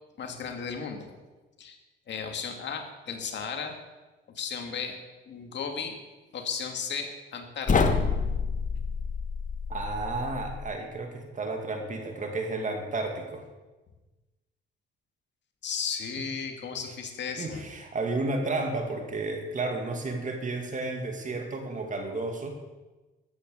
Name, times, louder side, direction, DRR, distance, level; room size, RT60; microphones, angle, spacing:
voice 1, 0.2-1.1 1.6-1.8 2.1-3.7 4.3-4.9 5.3-6.0 6.3-7.7 15.6-17.6, left 6 dB, 65° left, 4 dB, 2.4 m, -35 dB
sound 1, 7.7-10.7, left 4 dB, 40° left, 1.5 m, -28 dB
voice 2, 9.7-13.4 17.4-22.6, right 2 dB, 40° right, 3 dB, 2.4 m, -32 dB
14.0 x 10.0 x 6.9 m, 1.2 s
cardioid pair, 90°, 20 cm